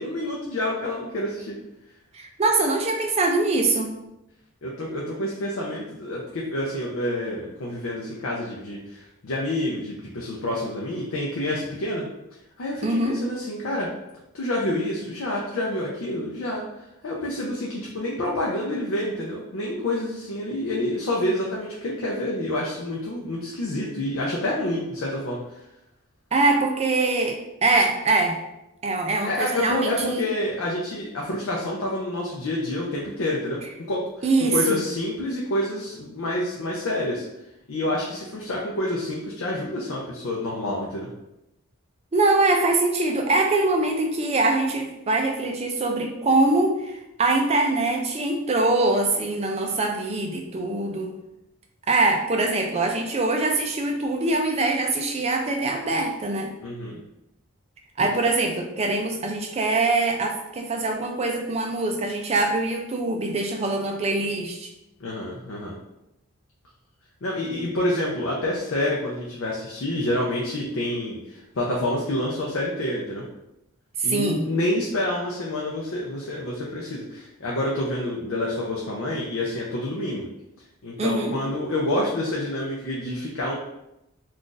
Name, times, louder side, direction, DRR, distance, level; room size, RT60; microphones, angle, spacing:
voice 1, 0.0-1.6 4.6-12.0 12.6-13.9 14.3-16.6 17.0-25.6 29.3-33.6 33.9-34.3 34.5-37.3 37.7-41.1 56.6-57.0 65.0-65.8 67.2-73.2 74.0-80.2 80.8-83.5, left 1 dB, 65° left, -3 dB, 0.5 m, -28 dB
voice 2, 2.1-4.0 12.8-13.2 26.3-28.4 28.8-30.2 34.2-34.8 42.1-51.1 51.9-56.5 58.0-64.7 74.0-74.5 81.0-81.4, right 2 dB, 30° right, 2 dB, 0.3 m, -23 dB
2.5 x 2.4 x 3.8 m, 0.89 s
head